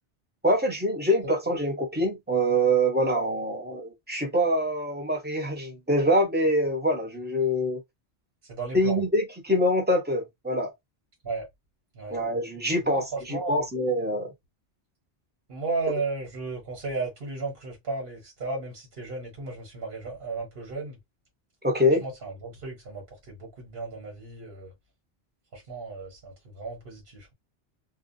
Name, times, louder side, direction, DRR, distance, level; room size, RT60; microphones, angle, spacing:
voice 1, 0.4-7.8 8.7-10.7 12.1-14.3 21.6-22.0, equal, 10° right, 0.9 m, -25 dB
voice 2, 8.5-9.0 11.2-11.5 11.9-12.2 12.8-13.6 15.5-21.0 22.0-24.7 25.5-27.3, right 3 dB, 60° right, 1.4 m, -34 dB
2.5 x 2.3 x 2.6 m
omnidirectional pair, 1.1 m